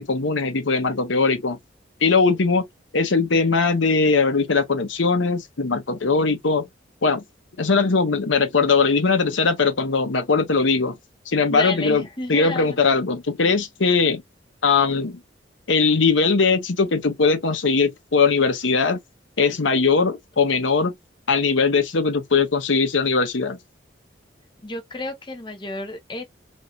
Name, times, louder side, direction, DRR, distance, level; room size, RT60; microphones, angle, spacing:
voice 1, 0.0-1.6 2.0-2.6 2.9-6.7 7.0-7.2 7.6-11.0 11.3-12.0 12.3-14.2 14.6-15.2 15.7-19.0 19.4-20.9 21.3-23.6, left 4 dB, 80° left, 0.9 m, -20 dB
voice 2, 11.5-12.8 24.6-26.4, left 2 dB, 25° left, 0.8 m, -31 dB
3.2 x 2.6 x 2.7 m
head